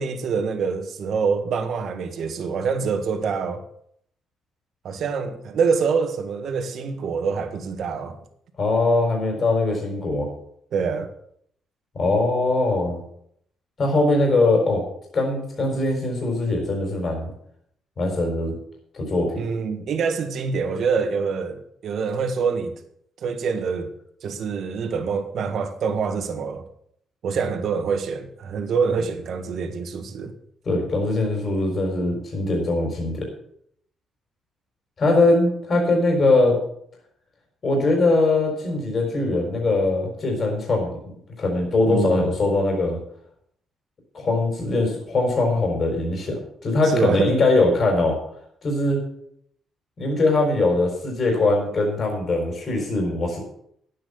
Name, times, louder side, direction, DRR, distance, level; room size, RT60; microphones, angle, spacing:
voice 1, 0.0-3.6 4.8-8.2 10.7-11.1 19.4-22.7 23.2-23.9 24.2-26.6 27.2-30.3 41.8-42.3 46.9-47.4, right 5 dB, 65° right, 1.7 m, -25 dB
voice 2, 8.6-10.3 11.9-13.0 13.8-14.8 15.1-17.3 18.0-18.6 18.9-19.4 30.7-33.3 35.0-36.6 37.6-40.9 41.4-43.0 44.1-48.2 48.6-49.0 50.0-53.4, left 2 dB, 45° left, 4.2 m, -21 dB
10.5 x 8.9 x 6.9 m
cardioid pair, 90°, 0 cm